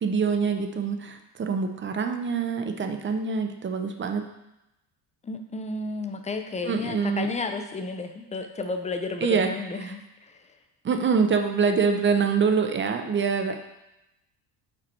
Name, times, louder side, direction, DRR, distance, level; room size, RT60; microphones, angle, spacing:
voice 1, 0.0-4.3 6.6-7.3 9.2-9.5 9.9-10.0 10.8-13.6, right 5 dB, 30° right, 6 dB, 0.6 m, -25 dB
voice 2, 5.2-10.4, left 3 dB, 15° left, 6 dB, 0.5 m, -32 dB
5.3 x 4.1 x 4.3 m, 0.92 s
cardioid pair, 100°, 42 cm